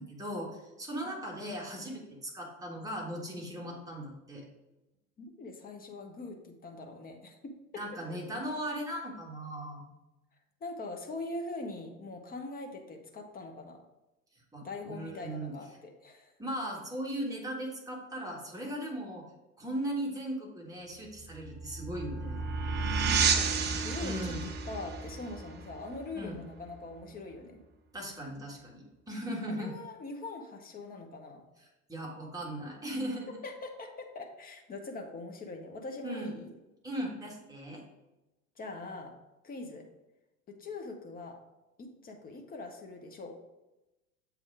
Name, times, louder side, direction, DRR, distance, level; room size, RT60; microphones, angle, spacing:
voice 1, 0.0-4.4 7.7-9.8 14.5-15.5 16.4-19.2 19.6-22.5 24.0-24.4 26.1-26.4 27.9-29.7 31.9-33.3 36.0-36.3 36.8-37.8, right 1 dB, 10° right, -2 dB, 1.7 m, -38 dB
voice 2, 5.2-7.8 8.1-8.2 10.6-13.8 14.6-16.3 23.0-27.6 29.5-31.4 33.4-36.5 38.6-39.1 39.4-39.9 40.5-41.4 41.8-43.4, left 2 dB, 20° left, 3 dB, 1.0 m, -42 dB
sound 1, 21.2-26.6, right 5 dB, 25° right, 0.7 m, -32 dB
7.2 x 3.5 x 4.8 m, 1.0 s
figure-of-eight pair, 80°, 42 cm